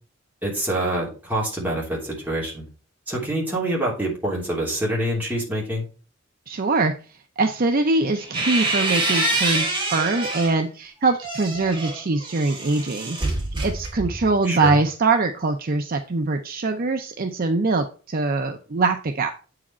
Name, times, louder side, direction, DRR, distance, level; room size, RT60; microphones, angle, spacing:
voice 1, 0.4-2.6 3.1-5.8 14.4-14.8, right 1 dB, 10° right, -4 dB, 3.0 m, -26 dB
voice 2, 6.5-6.9 7.4-13.2 13.6-19.3, right 3 dB, 45° right, 5 dB, 0.6 m, -23 dB
sound 1, 7.9-10.6 11.1-14.4, right 2 dB, 25° right, 2.9 m, -26 dB
8.3 x 4.9 x 4.3 m, 0.36 s
head